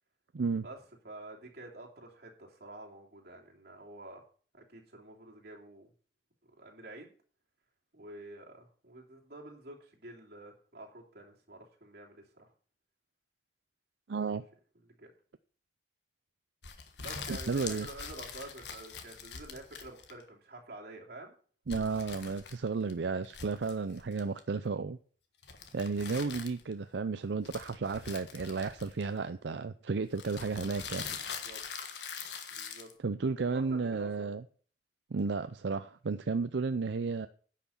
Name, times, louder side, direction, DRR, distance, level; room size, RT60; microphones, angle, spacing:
voice 1, 0.3-0.7 14.1-14.4 17.5-17.9 21.7-25.0 25.7-31.4 33.0-34.4 35.1-37.3, right 4 dB, 85° right, 0.5 m, -33 dB
voice 2, 1.0-4.2 4.5-5.9 6.5-7.1 7.9-12.5 14.8-15.1 17.0-21.3 31.1-31.2 31.4-31.6 32.5-32.9 33.5-34.3, right 2 dB, 60° right, 2.9 m, -49 dB
sound 1, 16.6-20.3 21.7-22.9 23.2-24.4 25.4-26.7 27.4-29.3 30.1-32.9, left 6 dB, 80° left, 1.5 m, -43 dB
10.0 x 5.9 x 7.1 m
head